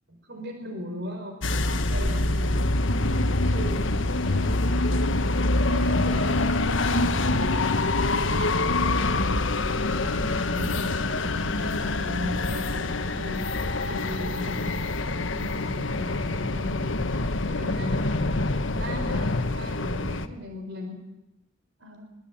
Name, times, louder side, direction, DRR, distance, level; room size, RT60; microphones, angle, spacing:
voice 1, 0.3-2.6 9.1-14.9 15.1-16.8 17.4-21.0, equal, 60° right, 4 dB, 4.3 m, -38 dB
sound 1, 1.4-20.3, left 2 dB, 75° left, 1.4 m, -25 dB
voice 2, 3.4-3.9 4.2-4.5 4.8-5.2 5.7-7.6 21.8-22.2, right 1 dB, 85° right, 6 dB, 5.2 m, -41 dB
22.0 x 21.0 x 8.8 m, 0.93 s
head